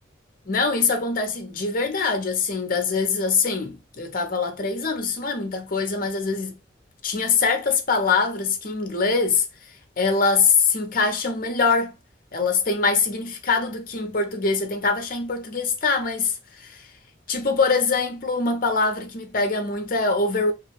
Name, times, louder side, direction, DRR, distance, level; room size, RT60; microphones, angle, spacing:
voice 1, 0.5-6.5 7.0-9.4 10.0-11.9 12.3-16.9 17.3-20.5, left 4 dB, 45° left, 0.7 m, -23 dB
3.0 x 2.3 x 3.2 m
head